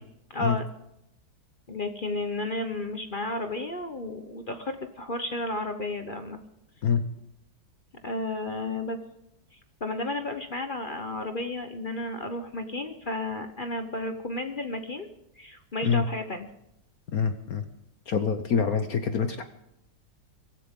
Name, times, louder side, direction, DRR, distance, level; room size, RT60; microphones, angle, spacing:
voice 1, 0.3-0.7 1.7-6.4 8.0-9.0 9.5-15.1 15.4-16.5, left 2 dB, 35° left, 7 dB, 0.8 m, -32 dB
voice 2, 17.1-17.6 18.1-19.4, left 6 dB, 55° left, 8 dB, 1.2 m, -25 dB
23.5 x 15.0 x 3.7 m, 0.83 s
omnidirectional pair, 2.1 m